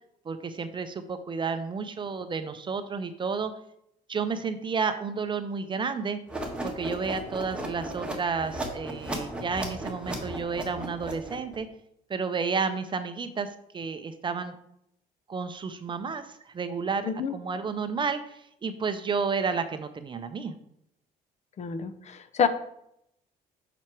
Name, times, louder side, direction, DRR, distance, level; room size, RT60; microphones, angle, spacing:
voice 1, 0.3-3.5 4.1-6.2 6.6-11.7 12.1-13.5 13.7-14.6 15.3-20.6, right 5 dB, 30° right, 10 dB, 0.5 m, -31 dB
sound 1, 6.3-11.5, right 1 dB, 5° right, 1.4 m, -36 dB
voice 2, 21.6-22.5, left 7 dB, 40° left, 12 dB, 0.6 m, -28 dB
6.0 x 4.4 x 4.6 m, 0.75 s
cardioid pair, 110°, 17 cm